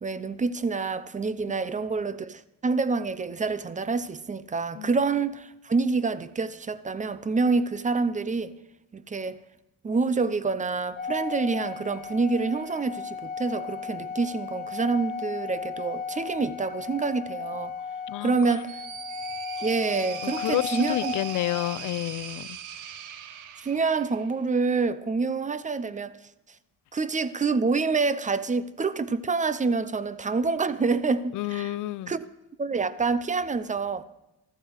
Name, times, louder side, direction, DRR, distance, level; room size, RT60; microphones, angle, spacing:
voice 1, 0.0-8.5 8.9-9.4 9.8-17.7 18.2-18.8 19.6-21.1 23.6-26.1 26.9-31.7 32.1-32.3 32.6-34.0, right 4 dB, 25° right, 0.8 m, -27 dB
Organ, 11.0-21.8, left 6 dB, 30° left, 0.7 m, -35 dB
sound 1, 18.2-24.4, right 9 dB, 85° right, 1.0 m, -40 dB
voice 2, 20.2-22.6 31.3-32.1, left 16 dB, 80° left, 0.5 m, -30 dB
14.5 x 14.0 x 4.8 m
cardioid pair, 90°, 30 cm